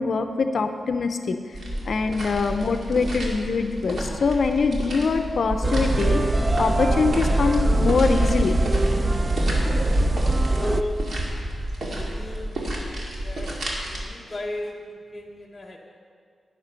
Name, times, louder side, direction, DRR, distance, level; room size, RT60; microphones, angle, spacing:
voice 1, 0.0-1.4 1.9-6.2 6.6-8.6, left 4 dB, 60° left, 7 dB, 0.5 m, -23 dB
sound 1, 1.5-14.0, right 1 dB, 55° right, 2.2 m, -31 dB
sound 2, 5.6-10.8, right 2 dB, 25° right, 0.4 m, -22 dB
voice 2, 10.6-11.0 11.9-13.5 13.8-15.8, left 1 dB, 15° left, -3 dB, 0.9 m, -35 dB
11.0 x 9.8 x 5.6 m, 2.1 s
wide cardioid pair, 130°, 0 cm